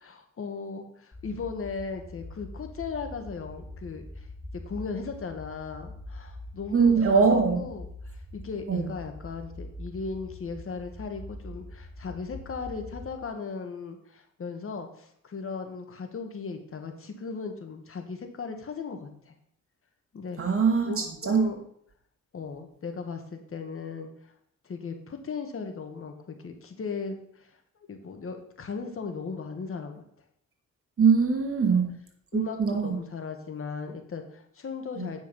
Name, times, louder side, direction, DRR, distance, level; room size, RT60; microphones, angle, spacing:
voice 1, 0.0-4.3 4.5-19.3 20.1-20.4 20.8-21.6 22.3-24.3 24.6-27.6 27.9-30.0 31.7-31.8 32.3-35.2, left 5 dB, 45° left, 5 dB, 1.6 m, -37 dB
sound 1, 1.1-13.1, left 1 dB, 25° left, 2.6 m, -44 dB
voice 2, 6.7-7.6 8.7-8.8 20.4-21.5 31.0-31.9 32.3-33.0 35.0-35.1, right 5 dB, 45° right, 2 dB, 2.4 m, -22 dB
9.3 x 6.2 x 5.5 m, 0.68 s
cardioid pair, 80°, 30 cm